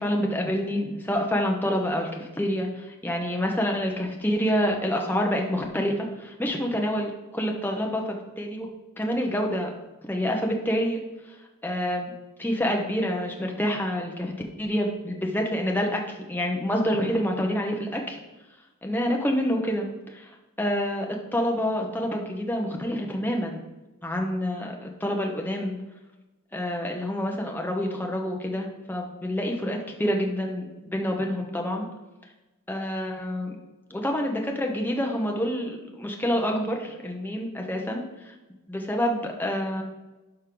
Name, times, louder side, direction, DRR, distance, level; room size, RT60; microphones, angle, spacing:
voice 1, 0.0-8.7 9.0-9.7 10.1-12.1 12.4-18.2 18.8-23.6 24.0-25.8 26.5-31.9 32.7-33.6 33.9-38.3 38.7-39.8, equal, 10° left, 1 dB, 0.9 m, -27 dB
11.5 x 5.4 x 3.8 m, 1.1 s
head